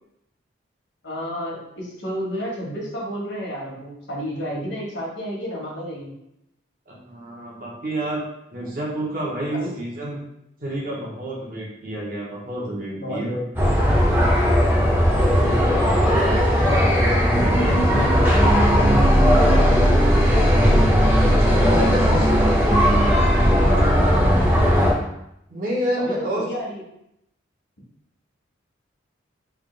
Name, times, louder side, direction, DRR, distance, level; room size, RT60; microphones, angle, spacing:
voice 1, 1.0-6.1 9.5-9.7 12.9-13.7 15.2-19.5 20.1-20.5 23.5-24.6 26.0-26.8, equal, 70° left, -4 dB, 1.2 m, -31 dB
voice 2, 6.9-8.2 8.5-10.2 10.6-13.4 21.3-22.9 25.5-26.4, right 1 dB, 45° right, -4 dB, 1.0 m, -29 dB
sound 1, 13.6-24.9, equal, 10° right, 0.7 m, -17 dB
3.4 x 2.5 x 3.8 m, 0.81 s
head